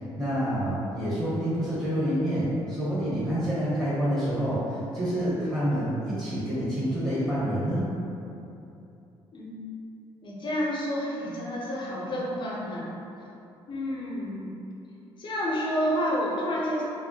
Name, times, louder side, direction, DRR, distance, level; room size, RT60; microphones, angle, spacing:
voice 1, 0.2-7.9, equal, 10° right, -11 dB, 1.1 m, -27 dB
voice 2, 10.2-12.9 13.7-14.5 15.2-16.8, equal, 50° left, -6 dB, 0.7 m, -29 dB
3.4 x 2.1 x 2.7 m, 2.8 s
supercardioid pair, 70°, 11 cm